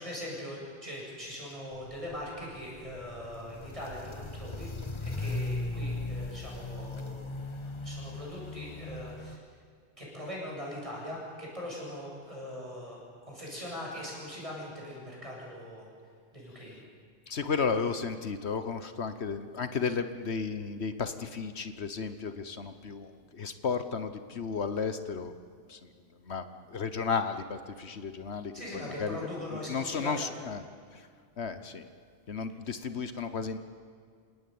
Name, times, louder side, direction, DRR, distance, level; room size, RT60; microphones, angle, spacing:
voice 1, 0.0-4.7 5.0-7.3 7.6-9.4 10.0-13.0 13.3-15.9 16.3-16.8 28.5-30.3, left 1 dB, 30° right, -3 dB, 8.2 m, -41 dB
Walk footsteps, 1.7-9.4, left 2 dB, 30° left, 1.0 m, -38 dB
voice 2, 17.3-25.3 25.7-25.8 26.2-29.2 29.5-30.6 30.9-31.1 31.4-31.9 32.3-33.6, left 5 dB, 75° left, 10 dB, 1.4 m, -33 dB
28.0 x 18.0 x 9.5 m, 2.1 s
omnidirectional pair, 1.1 m